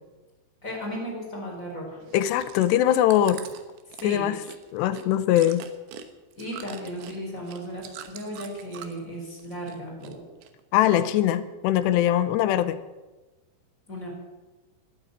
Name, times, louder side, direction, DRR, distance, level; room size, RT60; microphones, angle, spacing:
voice 1, 0.6-2.0 4.0-4.3 6.4-10.2 13.9-14.1, equal, 20° left, -2 dB, 4.6 m, -35 dB
Chewing mastication, 2.0-9.1 9.4-10.1 10.4-11.3 11.8-11.9, right 10 dB, 80° right, 3.4 m, -44 dB
voice 2, 2.1-3.4 4.0-4.4 4.7-5.6 10.7-12.8, left 12 dB, 80° left, 13 dB, 2.9 m, -22 dB
12.5 x 12.0 x 8.9 m, 1.1 s
omnidirectional pair, 5.1 m